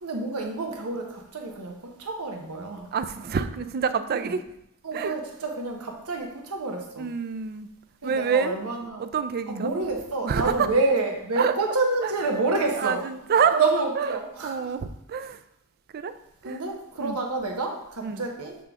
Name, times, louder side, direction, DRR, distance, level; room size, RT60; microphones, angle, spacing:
voice 1, 0.0-2.9 4.1-4.3 4.8-7.1 8.0-9.1 9.5-13.0 13.4-14.8 16.4-18.6, right 3 dB, 80° right, 2 dB, 1.1 m, -28 dB
voice 2, 2.9-4.4 4.9-5.1 7.0-7.7 8.0-8.5 9.0-9.7 10.2-10.7 11.4-11.6 12.0-12.1 12.8-13.6 14.0-15.4 15.9-16.1 16.4-16.6 17.0-17.2 18.0-18.3, right 6 dB, 45° right, 12 dB, 0.4 m, -27 dB
7.4 x 3.7 x 3.6 m, 0.79 s
head